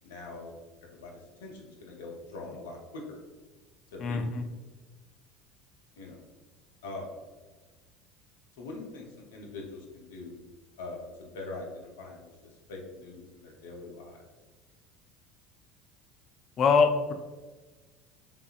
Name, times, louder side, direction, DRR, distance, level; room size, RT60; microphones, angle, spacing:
voice 1, 0.0-3.2 3.9-4.5 6.0-6.2 6.8-7.2 8.6-10.4 10.8-14.2, left 3 dB, 80° left, 0 dB, 0.7 m, -43 dB
voice 2, 4.0-4.4 16.6-17.1, left 5 dB, 45° left, 6 dB, 0.5 m, -23 dB
3.5 x 3.3 x 2.5 m, 1.3 s
hypercardioid pair, 70°, 0 cm